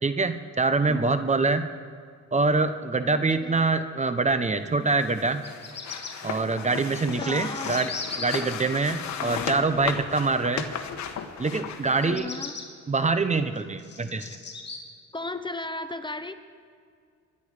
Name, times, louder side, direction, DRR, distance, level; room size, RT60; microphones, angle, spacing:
voice 1, 0.0-1.7 2.3-5.4 6.2-7.9 8.2-10.6 11.4-12.3 12.9-14.3, right 3 dB, 25° right, 10 dB, 0.9 m, -25 dB
voice 2, 0.9-1.2 3.1-3.7 7.1-7.9 9.2-9.6 12.0-12.6 15.1-16.3, left 2 dB, 15° left, 10 dB, 0.7 m, -36 dB
sound 1, 4.9-12.1, left 8 dB, 65° left, 1.3 m, -36 dB
Bird vocalization bird call bird song, 5.3-6.1 6.9-8.4 11.9-12.6 13.3-14.8, left 5 dB, 35° left, 2.6 m, -37 dB
24.5 x 11.0 x 5.0 m, 2.2 s
cardioid pair, 90°, 30 cm